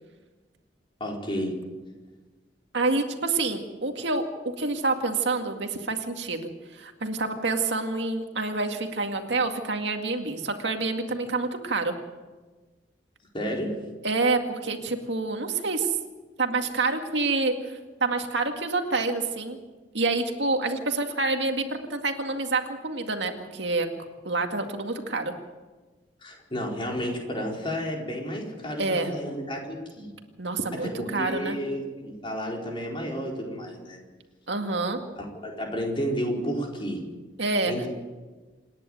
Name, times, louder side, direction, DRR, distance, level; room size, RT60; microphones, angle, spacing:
voice 1, 1.0-1.5 13.3-13.7 26.2-30.1 30.8-34.0 35.1-37.0 37.6-37.9, equal, 30° left, 0 dB, 4.5 m, -31 dB
voice 2, 2.7-11.9 14.0-16.0 16.4-19.6 19.9-23.9 24.2-25.3 28.8-29.1 30.4-31.6 34.5-35.0 37.4-37.7, right 3 dB, 75° right, 4 dB, 2.1 m, -27 dB
27.5 x 10.5 x 9.2 m, 1.3 s
head